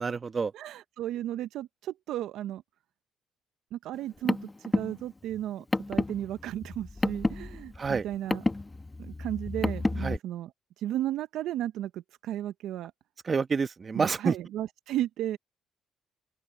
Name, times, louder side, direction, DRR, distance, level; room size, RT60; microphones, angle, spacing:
voice 1, 0.0-0.5 7.8-8.0 10.0-10.2 13.2-14.3, right 5 dB, 40° right, 1.3 m, -28 dB
voice 2, 0.5-2.6 3.7-8.4 9.0-10.5 10.8-12.9 13.9-15.4, right 12 dB, 75° right, 0.6 m, -34 dB
Car, 3.9-10.2, left 2 dB, 20° left, 0.9 m, -31 dB
open air
supercardioid pair, 65°, 0 cm